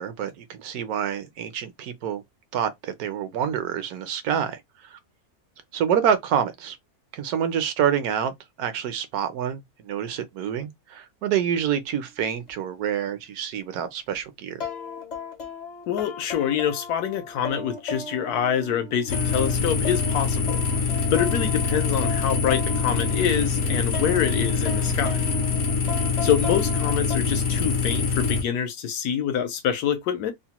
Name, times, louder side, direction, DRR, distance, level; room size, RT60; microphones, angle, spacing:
voice 1, 0.0-2.2 2.5-4.6 4.9-5.0 5.7-6.8 7.1-8.3 8.6-14.6, right 8 dB, 75° right, 1.1 m, -27 dB
sound 1, 12.5-12.6 14.6-23.5 23.9-27.2, left 5 dB, 45° left, 0.5 m, -36 dB
voice 2, 15.9-25.2 26.2-30.3, left 9 dB, 85° left, 1.2 m, -26 dB
sound 2, 19.1-28.4, left 4 dB, 65° left, 0.9 m, -24 dB
3.0 x 2.0 x 2.9 m
omnidirectional pair, 1.6 m